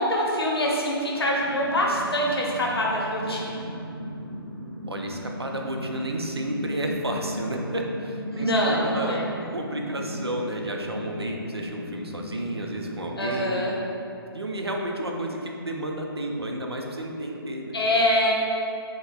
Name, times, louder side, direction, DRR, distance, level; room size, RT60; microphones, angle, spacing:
voice 1, 0.0-3.7 8.3-9.2 13.2-13.7 17.7-18.3, equal, 75° left, -3 dB, 0.7 m, -24 dB
sound 1, 1.0-13.2, equal, 25° left, 0.9 m, -37 dB
voice 2, 4.9-9.2 9.5-13.7 14.3-17.8, right 1 dB, 90° right, 1 dB, 0.4 m, -31 dB
5.2 x 2.1 x 2.3 m, 2.7 s
figure-of-eight pair, 140°, 13 cm